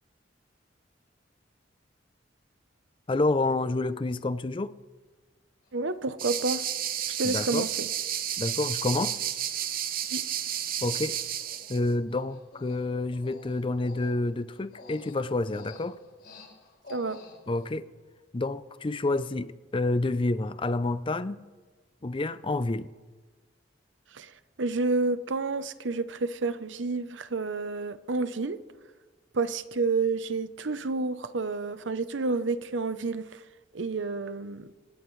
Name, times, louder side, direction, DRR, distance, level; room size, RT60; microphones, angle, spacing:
voice 1, 3.1-4.7 7.2-7.7 8.4-9.2 10.8-11.2 11.7-16.0 17.5-17.9 18.3-21.4 22.0-22.9, left 2 dB, 25° left, 0.5 m, -28 dB
Human voice, 5.6-5.7 6.5-6.9 7.5-7.6 7.9-8.1 8.4-8.6 9.0-9.2 9.5-10.5 10.8-11.1 11.4-17.7, left 2 dB, 55° left, 5.3 m, -50 dB
voice 2, 5.7-6.6 7.1-7.9 10.1-10.2 16.9-17.2 24.1-24.3 24.6-28.6 29.3-33.4 33.7-34.7, right 3 dB, 80° right, 0.8 m, -29 dB
sound 1, 6.2-11.8, right 10 dB, 50° right, 0.8 m, -31 dB
27.0 x 16.5 x 3.2 m
head